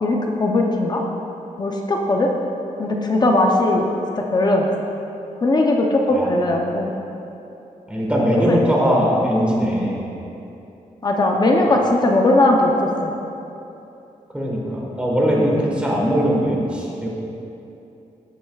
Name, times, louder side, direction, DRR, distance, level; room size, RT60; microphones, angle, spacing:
voice 1, 0.0-1.0 1.6-2.3 2.8-3.9 4.1-4.7 5.4-6.9 8.5-8.6 11.0-13.1, left 2 dB, 30° left, 0 dB, 0.6 m, -18 dB
voice 2, 7.9-10.0 11.7-11.8 14.3-17.1, equal, 10° right, -4 dB, 1.4 m, -20 dB
15.5 x 7.8 x 2.4 m, 2.8 s
wide cardioid pair, 175°, 14 cm